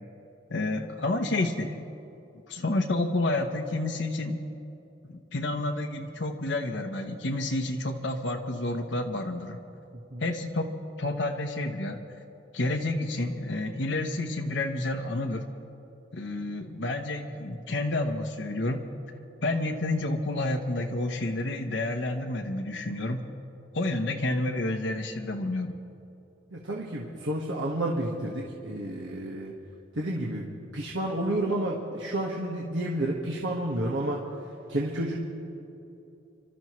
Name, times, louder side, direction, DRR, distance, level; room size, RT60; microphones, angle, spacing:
voice 1, 0.5-1.8 2.5-4.4 5.0-9.6 10.2-10.7 11.0-12.0 12.5-15.4 16.1-18.9 19.4-23.2 23.7-25.7, left 2 dB, 70° left, 3 dB, 0.9 m, -29 dB
voice 2, 26.5-29.5 29.9-30.4 30.7-34.2 34.7-35.2, right 1 dB, 80° right, -3 dB, 1.5 m, -30 dB
29.5 x 13.0 x 3.1 m, 2.8 s
head